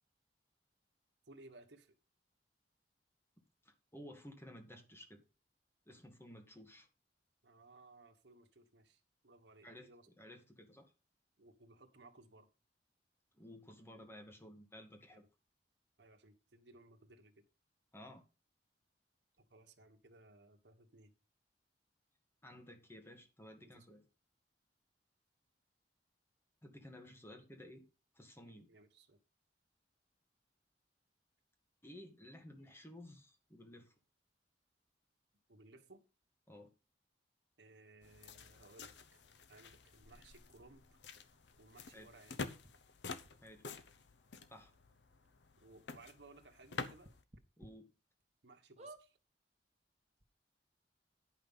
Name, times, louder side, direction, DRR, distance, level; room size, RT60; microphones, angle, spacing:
voice 1, 1.2-1.9 7.4-10.1 11.4-12.5 15.1-15.2 16.0-17.4 19.4-21.1 23.6-24.0 28.4-29.2 35.5-36.1 37.6-39.2 39.5-41.0 41.6-42.4 45.6-47.1 48.4-49.2, right 2 dB, 75° right, 1.4 m, -61 dB
voice 2, 3.7-5.2 5.9-6.9 9.6-9.9 10.2-10.9 13.3-15.2 17.9-18.2 22.4-24.1 26.6-27.9 28.1-28.7 31.8-33.9 36.5-36.7 41.9-42.1 43.4-43.7 44.5-44.7 47.6-47.9, left 1 dB, 15° left, 1.8 m, -54 dB
sound 1, 38.0-47.2, left 4 dB, 80° left, 0.8 m, -49 dB
sound 2, 42.6-42.7 43.2-43.3 44.3-44.4 44.7-44.8 45.2-45.3 47.0-47.7 48.2-48.3 48.8-49.0 49.9-50.0 50.2-50.3, right 2 dB, 40° right, 1.4 m, -54 dB
10.0 x 5.7 x 5.5 m
head